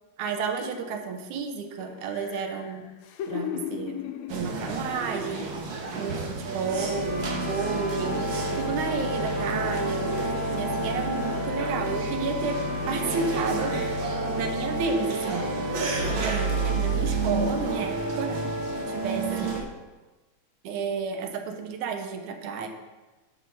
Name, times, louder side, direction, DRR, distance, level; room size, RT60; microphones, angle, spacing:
voice 1, 0.2-2.9 3.3-4.0 4.3-13.8 14.4-15.6 15.9-18.5 18.9-19.7 20.6-22.7, right 5 dB, 80° right, 6 dB, 2.3 m, -32 dB
sound 1, 0.6-1.4 1.8-6.0 6.3-6.5, left 10 dB, 80° left, 1.8 m, -38 dB
sound 2, 4.3-19.6, right 2 dB, 55° right, 1.5 m, -29 dB
11.0 x 5.4 x 5.6 m, 1.2 s
omnidirectional pair, 3.4 m